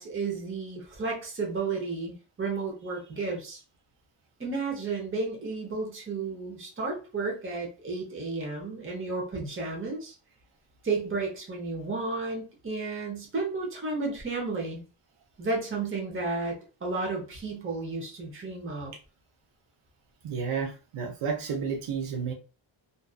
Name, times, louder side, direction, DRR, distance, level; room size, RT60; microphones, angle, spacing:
voice 1, 0.0-3.6 4.4-10.1 10.8-14.8 15.4-16.5 16.8-18.9, right 3 dB, 25° right, -1 dB, 0.9 m, -32 dB
voice 2, 20.2-22.3, right 6 dB, 80° right, 2 dB, 0.7 m, -31 dB
2.7 x 2.4 x 2.3 m, 0.34 s
wide cardioid pair, 110°, 50 cm